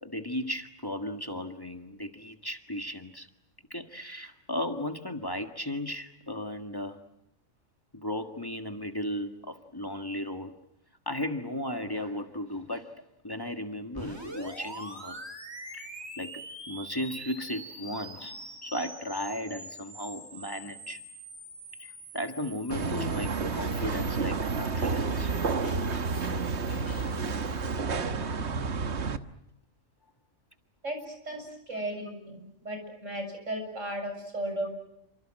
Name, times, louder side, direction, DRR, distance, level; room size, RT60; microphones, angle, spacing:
voice 1, 0.0-3.3 3.7-7.0 7.9-10.5 11.0-15.2 15.7-15.9 16.2-21.0 21.8-25.3, left 1 dB, 20° left, 6 dB, 1.7 m, -36 dB
sound 1, 13.9-27.8, right 1 dB, 20° right, 4.6 m, -45 dB
sound 2, 22.7-29.2, right 4 dB, 60° right, 1.5 m, -30 dB
sound 3, 23.0-28.1, left 5 dB, 85° left, 2.6 m, -45 dB
voice 2, 30.8-32.4 32.6-34.8, right 1 dB, 90° right, 5 dB, 7.6 m, -35 dB
29.0 x 25.5 x 7.7 m, 0.79 s
omnidirectional pair, 1.3 m